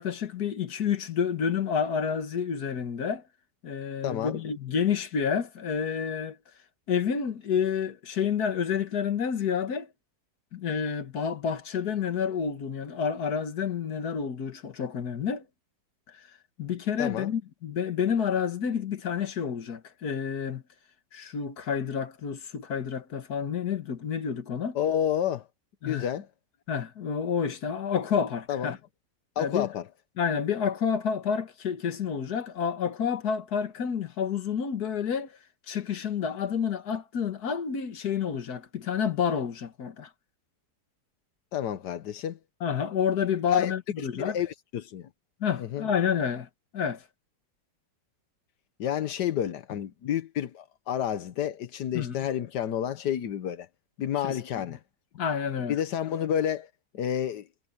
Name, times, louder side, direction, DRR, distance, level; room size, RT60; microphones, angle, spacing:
voice 1, 0.0-3.2 3.6-6.4 6.9-9.9 10.5-15.5 16.1-16.2 16.6-20.6 21.1-24.8 25.8-26.1 26.7-28.8 29.4-29.7 30.2-35.4 35.7-40.1 42.6-44.4 45.4-46.5 46.7-47.0 51.9-52.3 54.2-54.4 55.2-55.8, left 7 dB, 70° left, 2.0 m, -29 dB
voice 2, 4.0-4.4 17.0-17.3 24.8-25.5 25.8-26.3 28.5-28.8 29.4-29.8 41.5-42.4 43.5-43.7 44.2-45.1 45.6-45.9 48.8-53.7 54.0-54.8 55.7-56.7 56.9-57.5, left 9 dB, 85° left, 1.6 m, -30 dB
omnidirectional pair, 1.7 m